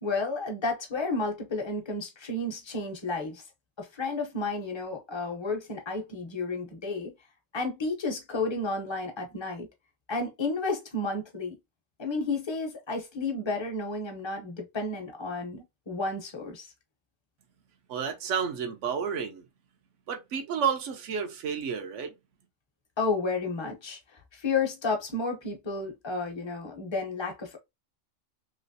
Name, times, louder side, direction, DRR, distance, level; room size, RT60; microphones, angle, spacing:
voice 1, 0.0-3.4 3.8-7.1 7.5-9.7 10.1-11.6 12.0-16.7 23.0-27.6, left 3 dB, 25° left, 0.7 m, -32 dB
voice 2, 17.9-19.4 20.1-22.1, right 7 dB, 70° right, 1.1 m, -31 dB
3.1 x 3.0 x 2.7 m
omnidirectional pair, 1.3 m